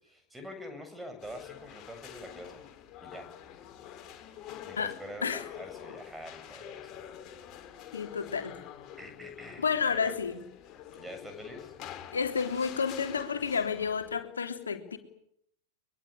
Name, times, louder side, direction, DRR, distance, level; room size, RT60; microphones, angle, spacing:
voice 1, 0.0-2.6 3.0-3.5 4.6-7.0 9.0-10.1 10.9-11.7, left 1 dB, 5° right, 7 dB, 7.9 m, -45 dB
sound 1, 1.2-14.2, left 10 dB, 35° left, 6.7 m, -47 dB
voice 2, 7.9-8.6 9.6-10.4 12.1-15.0, left 6 dB, 70° left, 6 dB, 3.3 m, -30 dB
23.0 x 23.0 x 10.0 m, 0.74 s
figure-of-eight pair, 90°, 0 cm